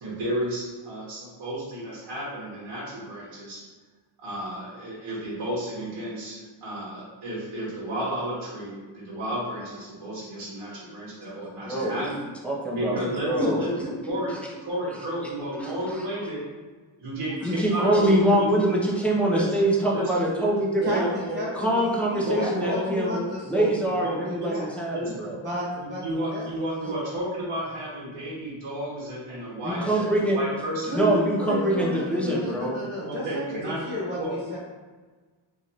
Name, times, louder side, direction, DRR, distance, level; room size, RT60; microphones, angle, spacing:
voice 1, 0.0-3.6 4.2-12.1 12.7-16.4 17.0-18.8 19.2-19.5 19.9-20.5 20.7-21.4 22.2-23.7 24.0-24.5 24.9-25.2 25.8-31.0 31.4-32.4 33.0-33.8 34.2-34.3, right 1 dB, 55° right, -7 dB, 1.0 m, -32 dB
voice 2, 11.7-12.2 12.4-14.1 15.5-15.9 17.4-21.0 21.5-23.2 23.4-25.4 29.6-30.4 30.9-32.7, right 1 dB, 5° left, -4 dB, 0.4 m, -24 dB
voice 3, 20.8-24.7 25.4-26.0 26.3-26.4 26.8-26.9 30.8-34.6, equal, 20° right, -8 dB, 1.2 m, -33 dB
3.2 x 2.5 x 2.7 m, 1.4 s
cardioid pair, 130°, 49 cm